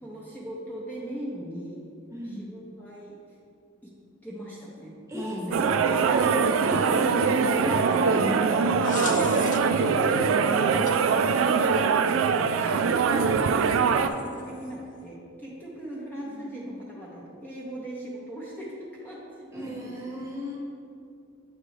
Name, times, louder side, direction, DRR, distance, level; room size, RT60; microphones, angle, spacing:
voice 1, 0.0-1.9 2.2-3.2 4.2-6.0 6.8-7.8 8.9-11.7 12.5-20.3, right 1 dB, 10° left, -7 dB, 0.7 m, -38 dB
voice 2, 2.1-2.5 5.1-7.1 7.4-8.5 16.2-16.7 19.5-20.6, equal, 15° right, -4 dB, 1.1 m, -36 dB
sound 1, 5.5-14.1, right 5 dB, 75° right, 0.3 m, -23 dB
sound 2, 8.5-9.9 10.9-11.0 12.1-12.2 14.1-14.7, left 7 dB, 40° left, 0.3 m, -37 dB
8.6 x 3.7 x 3.2 m, 2.4 s
head